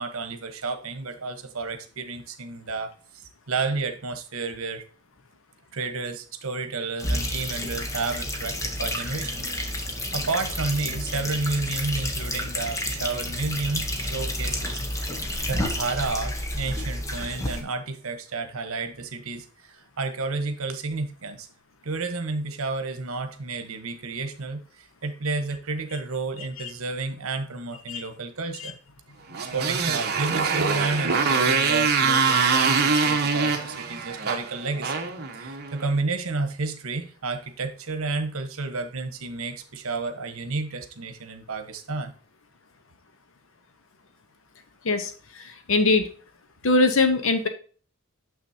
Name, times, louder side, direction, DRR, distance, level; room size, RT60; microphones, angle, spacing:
voice 1, 0.0-4.8 5.7-9.5 10.1-15.1 15.5-21.5 21.8-28.8 29.5-42.1, right 3 dB, 75° right, 9 dB, 1.1 m, -31 dB
sound 1, 7.0-17.6, left 1 dB, 15° left, 1.0 m, -30 dB
Motorcycle, 29.3-35.8, right 5 dB, 50° right, 1.0 m, -24 dB
voice 2, 44.8-46.1 46.6-47.5, left 3 dB, 65° left, 8 dB, 0.9 m, -22 dB
7.2 x 6.1 x 2.7 m, 0.41 s
head